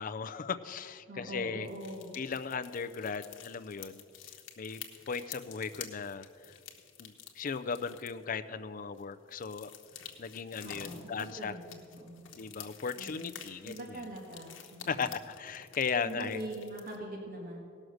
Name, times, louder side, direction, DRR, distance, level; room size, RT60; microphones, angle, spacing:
voice 1, 0.0-1.7 2.2-4.0 4.6-4.8 5.1-6.5 7.0-9.7 10.2-11.6 12.3-14.0 14.9-16.4, left 5 dB, 45° left, 11 dB, 0.4 m, -37 dB
voice 2, 1.1-2.2 10.6-12.2 13.0-13.4 13.6-15.1 16.0-17.6, right 1 dB, 45° right, -1 dB, 1.6 m, -43 dB
sound 1, 1.6-8.3 8.9-17.0, left 9 dB, 70° left, 1.1 m, -50 dB
17.5 x 6.4 x 6.4 m, 2.3 s
head